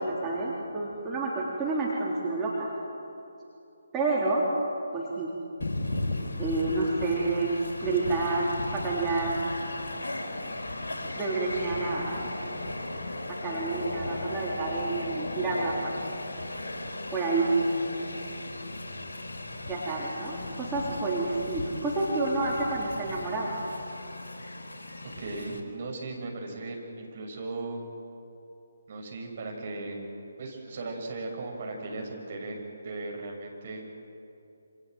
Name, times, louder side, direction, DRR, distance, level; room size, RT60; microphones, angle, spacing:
voice 1, 0.0-2.7 3.9-4.5 4.9-5.3 6.4-9.4 11.2-12.2 13.4-15.9 17.1-17.6 19.7-23.6, right 3 dB, 15° right, -6 dB, 3.7 m, -29 dB
Train, 5.6-25.6, left 1 dB, 60° left, 4.3 m, -36 dB
voice 2, 25.0-27.8 28.9-30.0 30.4-33.9, right 2 dB, 40° right, 1 dB, 6.5 m, -37 dB
28.0 x 26.5 x 7.8 m, 2.8 s
figure-of-eight pair, 145°, 0 cm